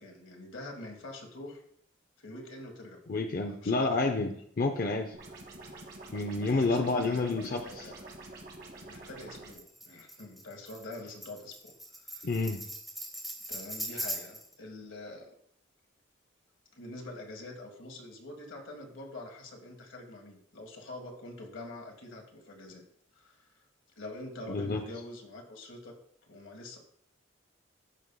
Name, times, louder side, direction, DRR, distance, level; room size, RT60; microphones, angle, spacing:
voice 1, 0.0-1.6 2.2-3.0 3.4-4.0 6.4-8.1 8.8-11.7 12.0-12.3 13.5-15.3 16.7-22.8 23.1-23.5 24.0-25.9 26.3-26.8, left 2 dB, 85° left, 3 dB, 1.5 m, -45 dB
voice 2, 3.1-5.2 6.1-7.9 12.2-12.6 24.5-24.8, left 3 dB, 45° left, 4 dB, 0.5 m, -29 dB
sound 1, 5.1-9.5, right 2 dB, 55° right, 1.9 m, -47 dB
Tambourine, 9.5-14.5, equal, ahead, 0.8 m, -40 dB
12.5 x 5.4 x 2.2 m, 0.66 s
head